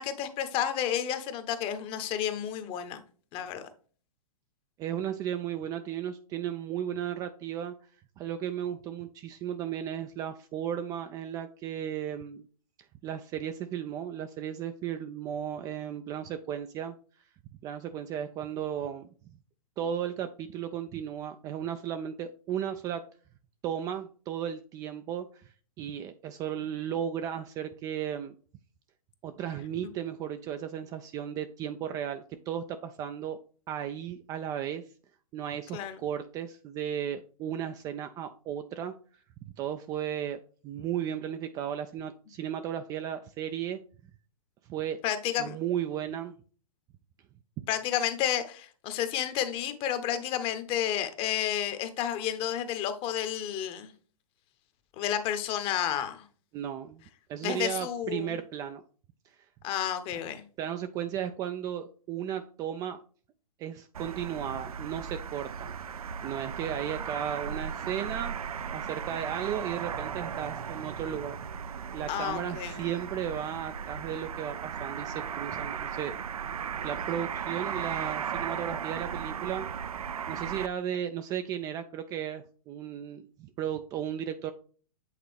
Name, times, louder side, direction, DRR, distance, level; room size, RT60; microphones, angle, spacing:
voice 1, 0.0-3.0 3.3-3.7 35.7-36.0 45.0-45.6 47.7-53.9 55.0-56.2 57.4-58.4 59.6-60.4 72.1-72.8, left 10 dB, 30° left, 0.9 m, -31 dB
voice 2, 4.8-7.7 8.2-12.5 13.0-16.9 17.6-19.1 19.8-23.0 23.6-28.3 29.2-33.4 33.7-34.8 35.3-38.9 39.6-43.8 44.7-45.0 45.4-46.3 56.5-57.0 57.3-58.8 60.6-63.0 63.6-68.3 68.7-71.4 71.9-76.2 76.4-79.7 80.3-84.5, right 9 dB, 20° right, 0.3 m, -35 dB
sound 1, 63.9-80.7, right 7 dB, 75° right, 0.5 m, -36 dB
8.3 x 3.8 x 3.4 m
hypercardioid pair, 120°, 19 cm